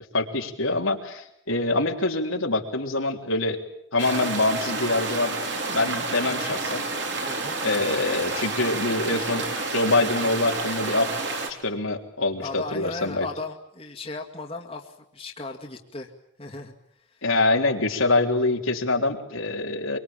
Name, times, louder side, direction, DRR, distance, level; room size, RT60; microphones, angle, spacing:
voice 1, 0.1-3.6 3.9-5.4 5.7-6.8 7.6-9.5 9.7-11.1 11.5-13.3 17.2-20.0, left 2 dB, 85° left, 2 dB, 3.5 m, -25 dB
sound 1, 4.0-11.5, right 3 dB, 55° right, 4.0 m, -29 dB
voice 2, 6.3-6.6 7.3-7.6 12.4-16.1 16.4-16.7 17.1-17.2, left 3 dB, 30° left, 1 dB, 2.2 m, -36 dB
25.0 x 24.0 x 8.9 m, 0.75 s
head